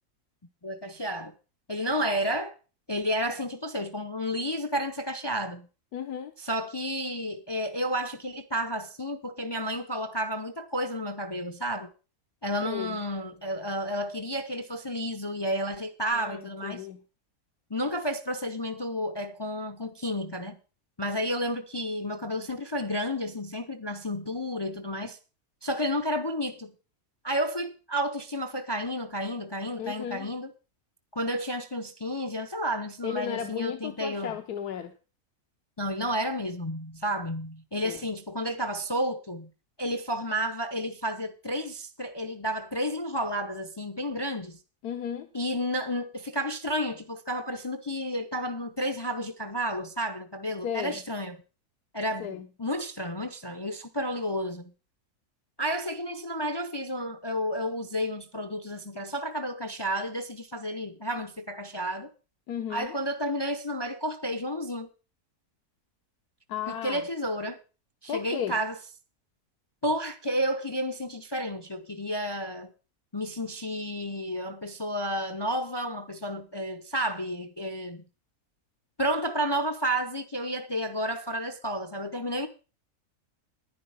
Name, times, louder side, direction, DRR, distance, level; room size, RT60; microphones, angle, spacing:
voice 1, 0.6-1.3 1.7-2.5 2.9-5.7 6.4-11.9 12.4-16.9 17.7-20.6 21.0-25.2 25.6-26.7 27.2-30.5 31.1-34.3 35.8-39.5 39.8-44.6 45.3-51.4 51.9-54.7 55.6-62.1 62.7-64.9 66.7-67.6 68.0-68.8 69.8-72.7 73.1-78.0 79.0-82.5, equal, 30° left, 0.4 m, -31 dB
voice 2, 5.9-6.3 12.6-13.0 16.1-17.0 29.8-30.3 33.0-34.9 37.8-38.0 44.8-45.3 50.6-51.0 52.2-52.5 62.5-62.9 66.5-67.0 68.1-68.6, left 9 dB, 85° left, 1.4 m, -34 dB
10.5 x 10.5 x 5.6 m
omnidirectional pair, 1.6 m